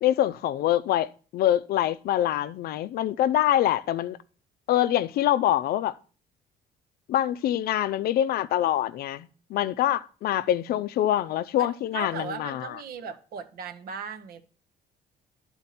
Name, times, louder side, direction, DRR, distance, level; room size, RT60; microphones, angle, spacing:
voice 1, 0.0-4.2 4.7-5.9 7.1-12.7, left 12 dB, 65° left, 0.5 m, -25 dB
voice 2, 11.6-14.4, right 6 dB, 65° right, 0.9 m, -37 dB
10.5 x 4.4 x 4.2 m
cardioid pair, 110°, 17 cm